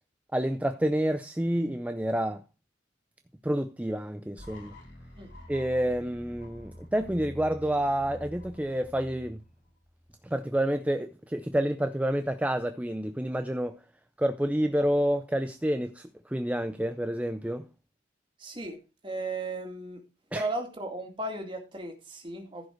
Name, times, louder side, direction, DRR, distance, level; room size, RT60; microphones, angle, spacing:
voice 1, 0.3-2.4 3.4-4.8 5.5-9.4 10.2-13.8 14.2-17.7 20.3-20.5, right 1 dB, 10° right, 0.5 m, -29 dB
sound 1, 4.4-10.3, left 1 dB, 85° left, 4.1 m, -47 dB
voice 2, 18.4-18.8 19.0-20.0 20.3-22.7, right 2 dB, 30° right, 2.3 m, -35 dB
14.5 x 5.2 x 4.5 m
head